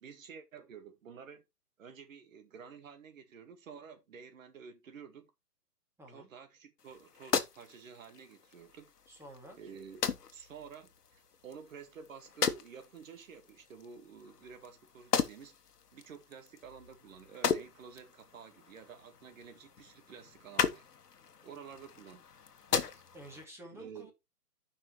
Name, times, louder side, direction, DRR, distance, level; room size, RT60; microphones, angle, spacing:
voice 1, 0.0-1.4 1.8-5.3 6.1-8.9 9.6-15.6 15.9-20.9 21.4-22.2 22.7-23.0 23.7-24.1, right 6 dB, 55° right, 2.0 m, -51 dB
voice 2, 6.0-6.3 9.1-9.6 23.1-24.1, equal, 5° right, 2.4 m, -51 dB
sound 1, 6.8-23.4, left 6 dB, 75° left, 1.4 m, -38 dB
12.5 x 5.6 x 3.2 m
hypercardioid pair, 135°, 47 cm